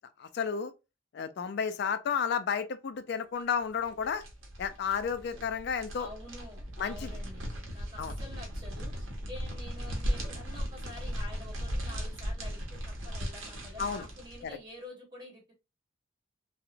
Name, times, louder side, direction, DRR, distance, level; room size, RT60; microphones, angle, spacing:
voice 1, 0.2-0.7 1.1-4.2 4.6-6.1 6.8-7.1 8.0-8.2 13.8-14.1 14.4-14.6, left 6 dB, 55° left, 0.3 m, -32 dB
sound 1, 3.8-14.5, equal, 80° right, 0.7 m, -37 dB
voice 2, 6.0-8.9 9.3-15.5, left 1 dB, 20° right, 1.3 m, -48 dB
2.8 x 2.0 x 2.5 m
head